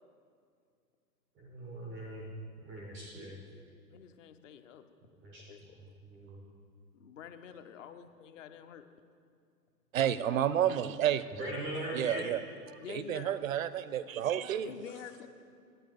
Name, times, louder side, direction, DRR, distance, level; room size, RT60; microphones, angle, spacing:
voice 1, 1.4-3.4 5.2-5.7 6.0-6.4 11.3-12.3, right 1 dB, ahead, -2 dB, 0.3 m, -41 dB
voice 2, 3.9-4.9 5.3-6.0 6.9-8.9 12.8-13.4 14.6-15.3, left 8 dB, 50° left, 9 dB, 0.8 m, -48 dB
voice 3, 9.9-11.2 11.9-12.4 12.9-14.7, right 10 dB, 55° right, 15 dB, 0.5 m, -30 dB
10.5 x 8.7 x 4.7 m, 2.3 s
figure-of-eight pair, 105°, 48 cm